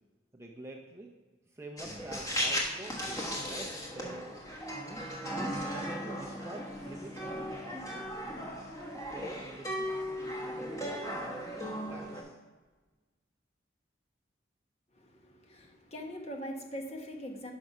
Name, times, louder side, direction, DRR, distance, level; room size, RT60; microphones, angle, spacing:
voice 1, 0.3-1.1 1.5-8.3 8.9-12.4, right 2 dB, 15° right, 1 dB, 0.6 m, -48 dB
sound 1, 1.8-12.2, equal, 20° left, 1.3 m, -37 dB
voice 2, 14.9-17.5, equal, 35° left, 2 dB, 1.1 m, -42 dB
6.3 x 5.9 x 5.4 m, 1.3 s
head